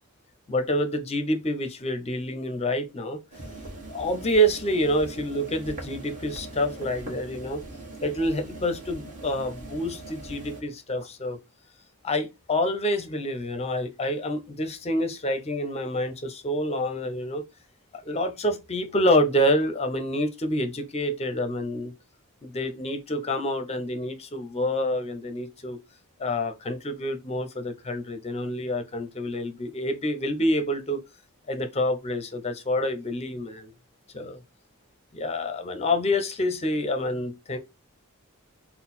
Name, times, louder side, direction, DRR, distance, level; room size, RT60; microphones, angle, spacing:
voice 1, 0.5-3.2 3.9-7.6 8.0-11.4 12.0-17.4 17.9-21.9 22.4-25.8 26.2-31.0 31.5-33.7 34.1-34.4 35.1-37.6, equal, 30° left, 0.5 m, -27 dB
sound 1, 3.3-10.6, right 2 dB, 35° right, 1.4 m, -41 dB
3.8 x 2.1 x 4.1 m
head